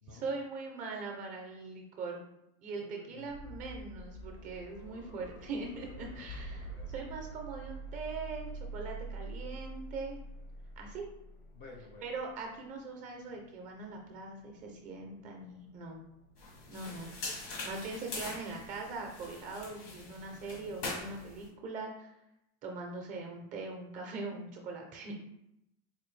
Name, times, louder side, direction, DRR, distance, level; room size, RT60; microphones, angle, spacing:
voice 1, 0.1-2.2 2.6-10.2 10.8-11.1 12.0-16.0 16.7-17.1 17.6-22.1 22.6-25.1, right 3 dB, 25° right, 1 dB, 0.4 m, -41 dB
voice 2, 2.7-3.6 6.4-7.1 11.5-12.1, left 4 dB, 30° left, 2 dB, 0.4 m, -54 dB
sound 1, 3.3-19.2, right 2 dB, 70° left, 0.7 m, -47 dB
sound 2, 16.4-21.5, left 2 dB, 90° left, 1.3 m, -43 dB
4.2 x 2.6 x 3.1 m, 0.83 s
cardioid pair, 175°, 30 cm